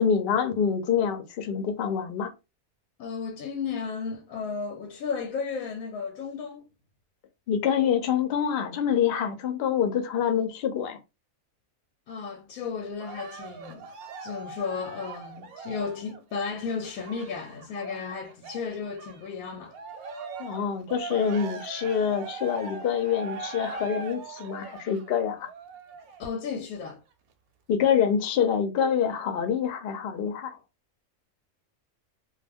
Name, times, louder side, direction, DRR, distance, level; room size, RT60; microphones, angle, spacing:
voice 1, 0.0-2.3 7.5-11.0 20.4-25.5 27.7-30.6, left 7 dB, 60° left, 0.6 m, -26 dB
voice 2, 3.0-6.7 12.1-13.9 14.2-19.8 26.2-27.0, left 5 dB, 90° left, 1.0 m, -34 dB
Cheering, 13.0-19.3 19.7-26.3 26.9-27.0, right 4 dB, 85° right, 1.0 m, -41 dB
2.3 x 2.2 x 3.4 m
omnidirectional pair, 1.5 m